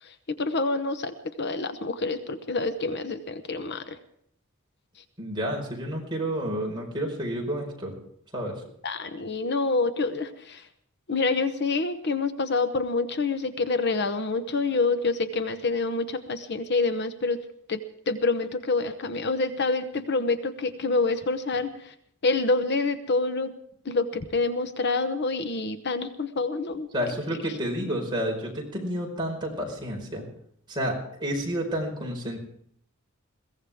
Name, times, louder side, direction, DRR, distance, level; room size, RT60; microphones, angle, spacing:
voice 1, 0.0-3.8 8.8-10.6 11.1-17.4 17.7-17.8 18.1-21.9 22.2-23.5 23.8-26.9, left 3 dB, 50° left, 9 dB, 0.9 m, -27 dB
voice 2, 5.2-7.9 8.3-8.6 26.9-30.2 30.7-32.4, equal, 20° right, -1 dB, 5.0 m, -30 dB
22.0 x 17.0 x 3.6 m, 0.68 s
head